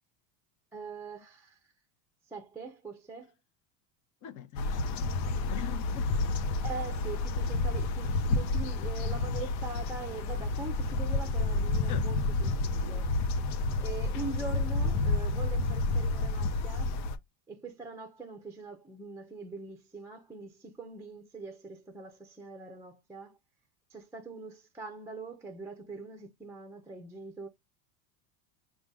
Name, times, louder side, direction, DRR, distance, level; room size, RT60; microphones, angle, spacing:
voice 1, 0.7-1.6 2.3-3.3 6.6-13.1 13.8-16.9 17.5-23.4 23.9-27.5, right 4 dB, 5° right, 0.6 m, -43 dB
voice 2, 4.2-6.1 11.9-12.0, left 11 dB, 40° left, 0.9 m, -43 dB
sound 1, 4.6-17.2, left 3 dB, 80° left, 0.9 m, -30 dB
5.1 x 2.4 x 3.7 m
supercardioid pair, 120°, 49 cm